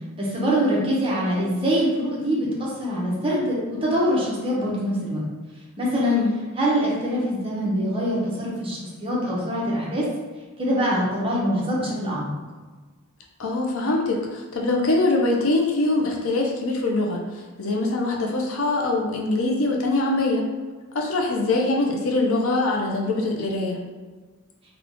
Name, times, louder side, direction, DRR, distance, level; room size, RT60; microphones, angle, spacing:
voice 1, 0.2-5.2 5.8-6.2 6.6-10.1 10.6-12.3, equal, 25° right, -5 dB, 1.0 m, -24 dB
voice 2, 13.4-20.4 20.9-23.8, left 2 dB, 70° left, 0 dB, 0.6 m, -23 dB
3.6 x 2.4 x 3.6 m, 1.3 s
head